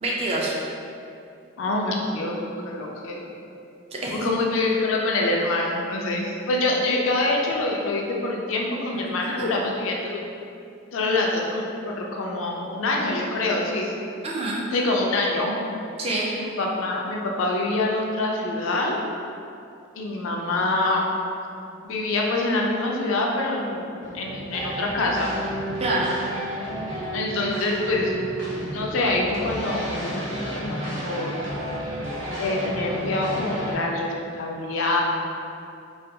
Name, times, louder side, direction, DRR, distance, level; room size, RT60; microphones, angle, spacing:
voice 1, 0.0-0.5 3.9-4.3 9.2-9.5 14.2-14.7 16.0-16.3 25.8-26.1, right 2 dB, 30° right, -4 dB, 0.3 m, -26 dB
voice 2, 1.6-3.2 4.1-10.2 10.9-13.9 14.7-15.6 16.3-19.0 20.0-21.1 21.8-25.3 27.1-28.2 28.7-31.4 32.4-35.0, left 2 dB, 80° left, -1 dB, 0.4 m, -25 dB
sound 1, 24.0-33.7, right 1 dB, 80° right, 0.7 m, -32 dB
2.4 x 2.2 x 2.7 m, 2.6 s
head